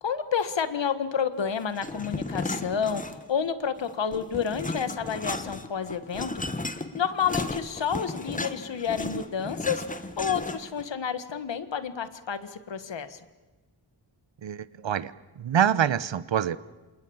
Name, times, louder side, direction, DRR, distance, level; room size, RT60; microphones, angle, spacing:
voice 1, 0.0-9.8 10.2-13.2, left 7 dB, 65° left, 11 dB, 1.7 m, -30 dB
sound 1, 1.7-3.4 3.8-10.8, left 2 dB, 15° left, 1.2 m, -34 dB
voice 2, 14.4-16.6, right 9 dB, 70° right, 17 dB, 1.0 m, -26 dB
28.5 x 27.5 x 7.3 m, 1.2 s
wide cardioid pair, 160°, 46 cm